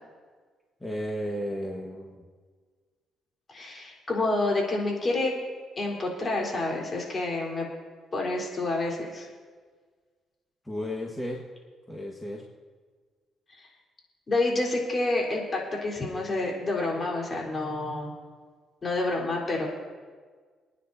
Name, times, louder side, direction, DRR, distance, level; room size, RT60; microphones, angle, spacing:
voice 1, 0.8-2.2 10.6-11.5 11.9-12.4, equal, 10° left, -2 dB, 1.6 m, -34 dB
voice 2, 3.5-5.3 5.8-7.7 8.1-9.3 13.5-13.7 14.3-18.1 18.8-19.7, left 2 dB, 35° left, -2 dB, 3.8 m, -28 dB
28.0 x 9.7 x 2.7 m, 1.5 s
cardioid pair, 90°, 0 cm